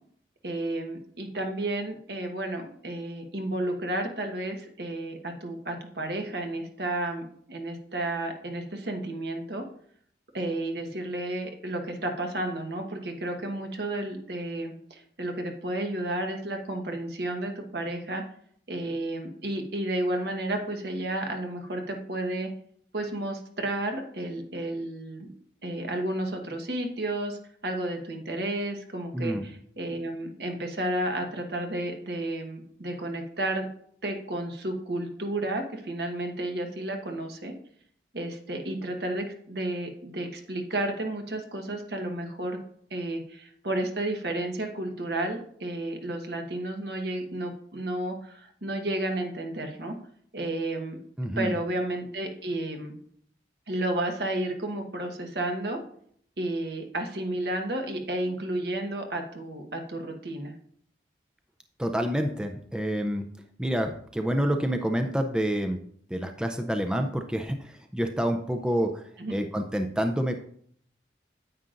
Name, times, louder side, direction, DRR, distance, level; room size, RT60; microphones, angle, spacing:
voice 1, 0.4-9.6 10.3-18.2 18.7-22.5 22.9-25.3 25.6-33.7 34.0-37.5 38.1-42.6 42.9-49.9 50.3-51.0 51.4-53.0 53.7-55.8 56.4-60.5 69.2-69.3, right 1 dB, 70° right, 4 dB, 1.2 m, -32 dB
voice 2, 29.1-29.4 51.2-51.6 61.8-63.3 63.6-65.8 66.1-70.3, equal, 5° right, 5 dB, 0.4 m, -28 dB
9.4 x 8.7 x 2.5 m, 0.63 s
head